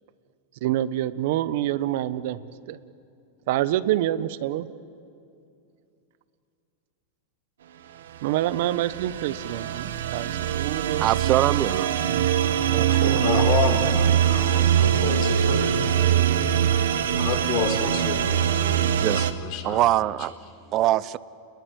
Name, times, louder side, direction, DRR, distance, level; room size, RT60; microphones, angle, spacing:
voice 1, 0.6-2.4 2.7-2.8 3.5-4.7 8.2-11.0 12.7-13.4 14.2-14.3, right 13 dB, 65° right, 1.0 m, -27 dB
sound 1, 8.3-19.3, right 9 dB, 85° right, 1.4 m, -23 dB
voice 2, 11.0-11.9 19.0-19.3 19.6-20.3 20.7-21.2, right 15 dB, 40° right, 0.6 m, -22 dB
voice 3, 12.9-15.9 16.6-19.8, left 7 dB, 55° left, 4.2 m, -30 dB
29.5 x 20.5 x 9.4 m
hypercardioid pair, 120°, 0 cm